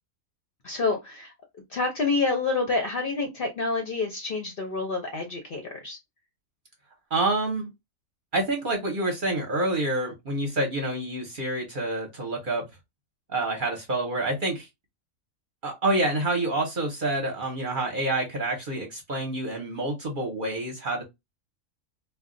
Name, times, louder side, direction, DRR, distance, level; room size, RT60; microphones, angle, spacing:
voice 1, 0.6-1.3 1.7-6.0, left 3 dB, 55° left, 0.7 m, -28 dB
voice 2, 7.1-7.7 8.3-12.6 13.3-14.7 15.6-21.0, right 2 dB, 45° right, 0.8 m, -27 dB
2.3 x 2.2 x 3.7 m
omnidirectional pair, 1.5 m